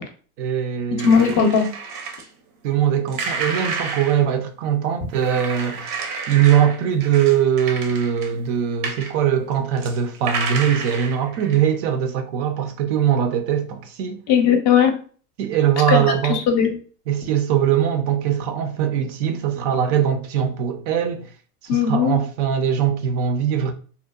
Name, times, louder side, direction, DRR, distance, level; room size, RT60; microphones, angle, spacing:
voice 1, 0.4-1.2 2.6-14.2 15.4-16.4 17.1-21.3 21.6-23.7, right 9 dB, 50° right, 0.5 m, -21 dB
voice 2, 1.0-1.7 14.3-14.9 15.9-16.7 21.7-22.2, left 7 dB, 40° left, 0.5 m, -17 dB
sound 1, 1.0-2.2 3.1-4.2 5.1-8.5 8.8-9.1 9.5-11.7, right 4 dB, 75° right, 0.8 m, -30 dB
2.7 x 2.0 x 2.2 m
hypercardioid pair, 110°, 45 cm